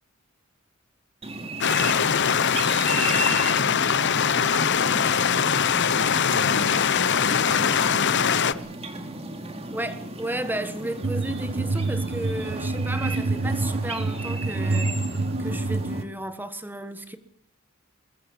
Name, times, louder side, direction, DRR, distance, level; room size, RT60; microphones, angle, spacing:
sound 1, 1.2-16.0, right 2 dB, 30° right, 2.9 m, -35 dB
sound 2, 1.6-8.5, left 7 dB, 60° left, 1.0 m, -22 dB
voice 1, 5.9-8.7, left 1 dB, 80° left, 2.1 m, -36 dB
voice 2, 9.7-17.2, right 1 dB, 10° right, 1.5 m, -34 dB
sound 3, 11.0-16.0, right 3 dB, 55° right, 1.4 m, -27 dB
22.5 x 21.0 x 7.4 m
head